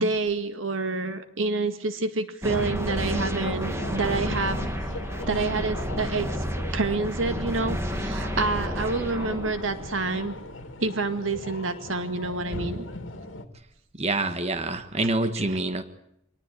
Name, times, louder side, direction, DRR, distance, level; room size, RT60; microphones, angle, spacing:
voice 1, 0.0-4.6 5.3-6.4 6.7-10.4 10.8-12.8 15.0-15.1 15.4-15.6, right 3 dB, 90° right, 9 dB, 2.0 m, -28 dB
sound 1, 2.4-10.6, equal, 15° right, 2.2 m, -31 dB
sound 2, 2.6-13.5, left 2 dB, 75° left, 2.5 m, -39 dB
voice 2, 14.0-15.8, right 2 dB, 35° right, 9 dB, 1.6 m, -26 dB
25.5 x 19.0 x 8.6 m, 0.74 s
head